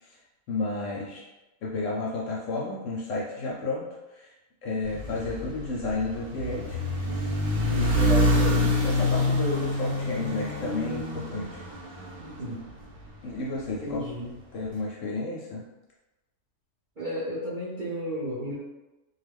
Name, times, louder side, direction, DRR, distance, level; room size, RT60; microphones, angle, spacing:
voice 1, 0.5-1.2 1.6-3.8 4.1-4.3 4.6-6.8 7.1-7.3 7.8-11.6 13.2-14.0 14.5-15.6, left 2 dB, 65° left, -4 dB, 0.8 m, -32 dB
sound 1, 4.8-13.2, left 1 dB, 80° right, 1.3 m, -27 dB
voice 2, 13.8-14.3 17.0-18.5, equal, 50° right, -10 dB, 0.5 m, -33 dB
2.6 x 2.3 x 3.3 m, 1.0 s
omnidirectional pair, 1.6 m